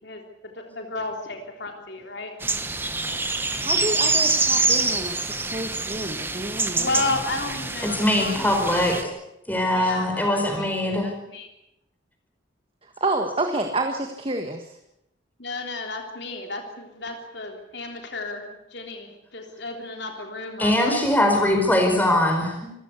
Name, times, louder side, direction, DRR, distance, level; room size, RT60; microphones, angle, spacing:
voice 1, 0.0-2.4 6.8-9.1 9.7-11.5 15.4-18.5 18.7-21.0, left 2 dB, 60° left, 3 dB, 3.5 m, -33 dB
sound 1, 2.4-9.0, right 3 dB, 10° right, 1.3 m, -25 dB
voice 2, 3.6-6.9 13.0-14.6, right 2 dB, 30° right, 5 dB, 1.6 m, -29 dB
voice 3, 7.8-9.0 9.5-11.1 20.6-22.7, left 1 dB, 10° left, 3 dB, 4.9 m, -21 dB
27.0 x 15.5 x 8.3 m, 0.84 s
head